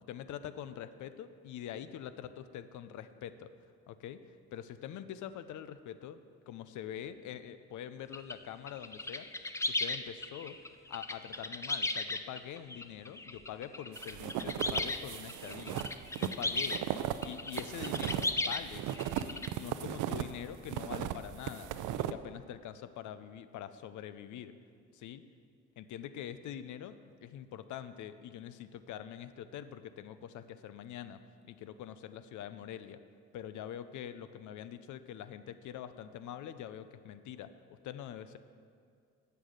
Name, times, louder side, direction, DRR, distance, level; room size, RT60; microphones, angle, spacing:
voice 1, 0.0-3.5 3.9-6.2 6.5-9.3 9.7-10.6 10.9-15.8 16.2-16.8 17.2-18.9 19.3-24.5 24.9-25.3 25.8-33.0 33.3-38.4, left 10 dB, 75° left, 12 dB, 0.6 m, -44 dB
sound 1, 8.1-8.3 8.7-16.8 17.2-18.6 18.9-19.5, left 2 dB, 10° left, 0.4 m, -36 dB
sound 2, 13.9-20.3 20.7-22.1, right 11 dB, 85° right, 0.5 m, -36 dB
9.1 x 6.8 x 6.5 m, 2.2 s
cardioid pair, 90°, 30 cm